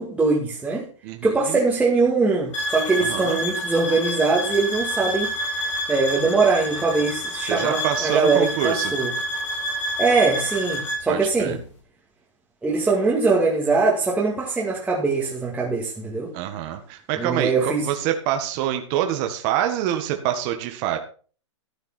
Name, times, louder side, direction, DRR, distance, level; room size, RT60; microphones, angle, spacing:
voice 1, 0.0-0.9 1.2-9.1 10.0-11.6 12.6-16.3 17.2-17.9, right 4 dB, 5° right, 2.3 m, -22 dB
voice 2, 1.0-1.6 3.0-3.4 7.5-8.9 11.1-11.6 16.3-21.0, right 11 dB, 40° right, 1.7 m, -26 dB
sound 1, 2.5-11.1, equal, 80° left, 6.7 m, -28 dB
13.5 x 9.4 x 4.4 m
hypercardioid pair, 145°, 16 cm